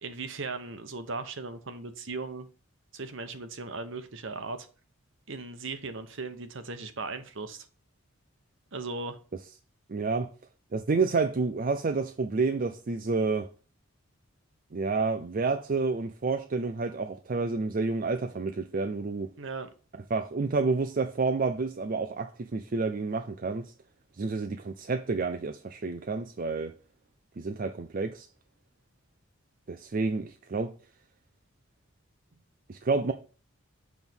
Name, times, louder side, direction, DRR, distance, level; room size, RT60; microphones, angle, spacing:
voice 1, 0.0-2.5 2.9-4.7 5.3-7.7 8.7-9.2 19.4-19.7, right 3 dB, 60° right, 1.0 m, -37 dB
voice 2, 9.9-10.3 10.7-13.5 14.7-19.3 20.1-23.7 24.2-26.7 27.4-28.3 29.7-30.7 32.7-33.1, right 4 dB, 40° right, 0.4 m, -29 dB
7.1 x 3.6 x 6.0 m
head